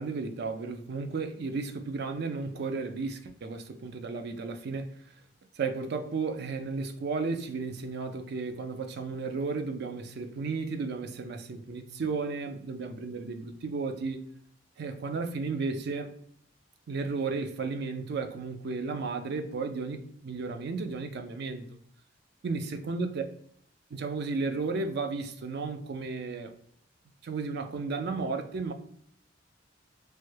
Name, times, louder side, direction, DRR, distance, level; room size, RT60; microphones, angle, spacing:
voice 1, 0.0-5.1 5.6-14.3 14.8-16.1 16.9-21.6 22.4-23.2 23.9-26.5 27.2-28.7, right 4 dB, 60° right, 0.4 m, -33 dB
3.1 x 2.2 x 3.1 m
head